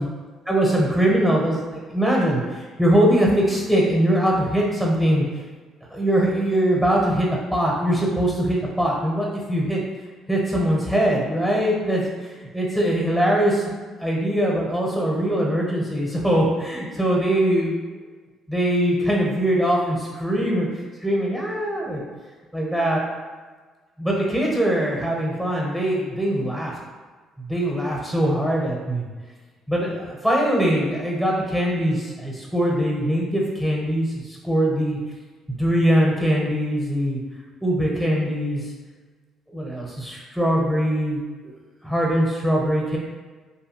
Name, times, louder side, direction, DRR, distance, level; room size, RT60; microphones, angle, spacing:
voice 1, 0.5-5.2 5.9-9.8 10.3-12.1 12.5-18.0 18.5-20.7 21.0-22.0 22.5-23.0 24.0-26.7 27.4-29.1 29.7-35.0 35.5-37.2 37.6-38.6 39.5-41.5 41.8-43.0, equal, ahead, -2 dB, 0.8 m, -22 dB
2.6 x 2.2 x 2.9 m, 1.4 s
supercardioid pair, 70°, 0 cm